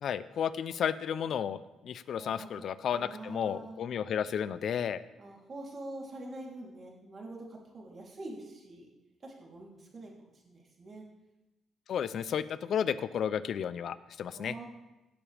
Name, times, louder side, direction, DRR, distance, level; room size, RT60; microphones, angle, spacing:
voice 1, 0.0-5.0 11.9-14.5, left 8 dB, 65° left, 15 dB, 0.5 m, -33 dB
voice 2, 2.2-2.7 2.9-3.8 5.2-8.9 9.2-11.0 14.3-14.7, right 2 dB, 40° right, -2 dB, 3.2 m, -45 dB
17.5 x 7.0 x 3.4 m, 1.0 s
cardioid pair, 90°, 0 cm